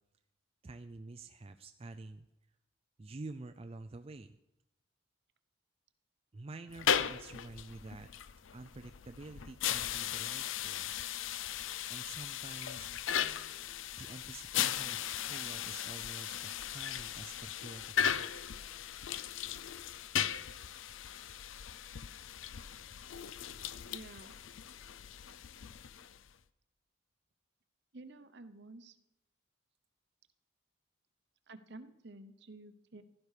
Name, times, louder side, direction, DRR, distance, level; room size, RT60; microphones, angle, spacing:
voice 1, 0.6-2.3 3.0-4.4 6.3-8.1 8.5-10.9 11.9-12.9 13.9-18.5, right 2 dB, 30° right, 7 dB, 0.4 m, -48 dB
sound 1, 6.7-26.3, left 9 dB, 75° left, 0.5 m, -37 dB
voice 2, 23.9-24.3 27.9-29.0 31.5-33.0, right 2 dB, 55° right, 11 dB, 0.9 m, -51 dB
15.5 x 12.5 x 4.9 m, 0.92 s
head